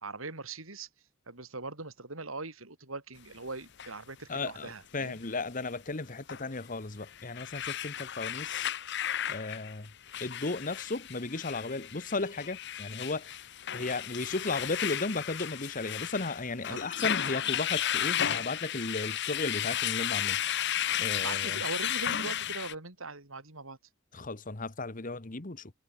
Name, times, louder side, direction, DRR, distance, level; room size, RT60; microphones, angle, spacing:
voice 1, 0.0-0.9 1.3-5.2 16.7-16.8 21.2-23.8, right 3 dB, 80° right, 4.6 m, -41 dB
sound 1, 3.8-3.9 6.3-6.4 7.0-22.7, left 11 dB, 55° left, 1.2 m, -33 dB
voice 2, 4.3-8.7 9.3-9.9 10.2-13.3 13.7-20.4 21.0-21.6 24.1-25.7, left 3 dB, 40° left, 1.4 m, -35 dB
head